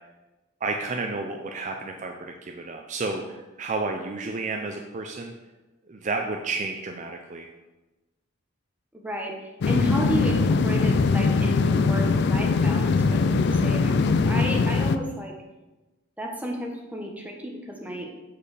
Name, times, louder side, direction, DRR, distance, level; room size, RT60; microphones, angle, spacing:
voice 1, 0.6-5.3 5.9-7.5, right 3 dB, 35° right, 3 dB, 0.4 m, -31 dB
voice 2, 8.9-15.3 16.2-18.2, equal, 5° right, 0 dB, 0.9 m, -33 dB
sound 1, 9.6-15.0, left 4 dB, 55° left, 0.3 m, -21 dB
7.1 x 4.6 x 4.8 m, 1.1 s
head